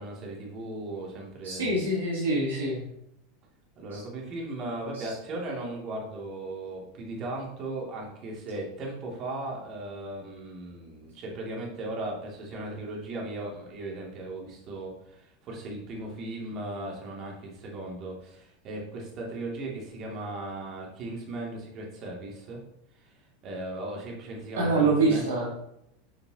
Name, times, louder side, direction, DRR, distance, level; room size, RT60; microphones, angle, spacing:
voice 1, 0.0-1.7 3.8-22.6 23.0-23.1 23.4-25.3, right 2 dB, 40° right, -2 dB, 2.7 m, -37 dB
voice 2, 1.4-2.8 3.9-4.0 4.9-5.1 24.6-25.5, right 2 dB, 70° right, -3 dB, 1.9 m, -25 dB
8.7 x 7.4 x 3.0 m, 0.78 s
figure-of-eight pair, 80°, 0 cm